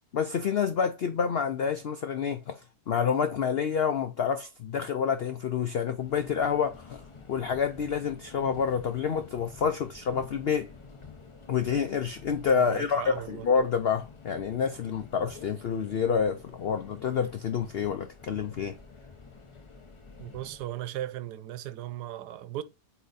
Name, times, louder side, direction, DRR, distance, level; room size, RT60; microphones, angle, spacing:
voice 1, 0.1-2.6 2.9-7.0 7.3-10.7 11.5-18.8, left 6 dB, 85° left, 0.5 m, -28 dB
Subway metro underground, 5.9-20.7, left 4 dB, 35° left, 0.5 m, -49 dB
voice 2, 12.5-13.5 20.2-22.6, right 13 dB, 75° right, 1.2 m, -37 dB
8.2 x 3.0 x 4.0 m
omnidirectional pair, 1.8 m